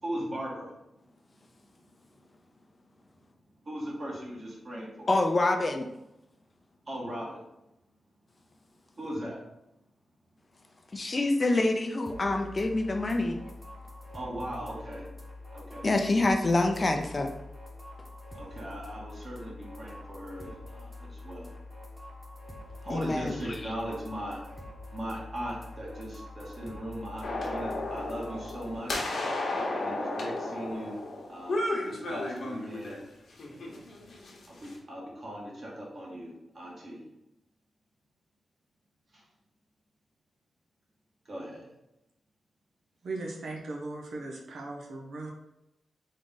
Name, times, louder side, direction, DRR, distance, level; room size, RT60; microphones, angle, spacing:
voice 1, 0.0-0.7 3.7-5.1 6.9-7.4 9.0-9.4 14.1-15.0 15.5-15.9 18.3-21.5 22.8-24.4 24.9-29.1 29.8-31.0 31.3-33.0 34.5-37.0 39.1-39.2 41.3-41.7, equal, 45° right, -4 dB, 1.7 m, -38 dB
voice 2, 5.1-5.9 10.9-13.4 15.8-17.3 22.9-23.7, left 2 dB, 35° left, 4 dB, 0.5 m, -26 dB
sound 1, 12.1-28.8, left 2 dB, ahead, 1.0 m, -45 dB
sound 2, 27.2-33.0 33.4-34.7, left 2 dB, 65° left, 1.0 m, -34 dB
voice 3, 43.0-45.3, right 2 dB, 80° right, -1 dB, 0.8 m, -38 dB
3.7 x 3.6 x 3.9 m, 0.87 s
wide cardioid pair, 110°, 0 cm